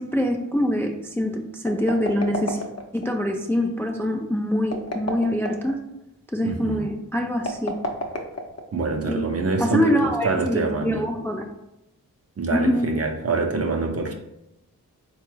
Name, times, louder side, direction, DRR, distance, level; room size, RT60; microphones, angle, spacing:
voice 1, 0.0-2.6 2.9-5.8 6.3-7.7 9.1-9.3 9.6-11.4 12.5-13.0, left 1 dB, 5° left, 3 dB, 0.3 m, -24 dB
sound 1, 1.6-3.1 4.6-5.7 7.4-8.9, left 1 dB, 45° left, 0.7 m, -30 dB
voice 2, 6.4-6.8 8.7-11.0 12.4-14.1, right 3 dB, 40° right, 3 dB, 0.6 m, -25 dB
3.9 x 2.3 x 3.1 m, 0.91 s
cardioid pair, 40°, 37 cm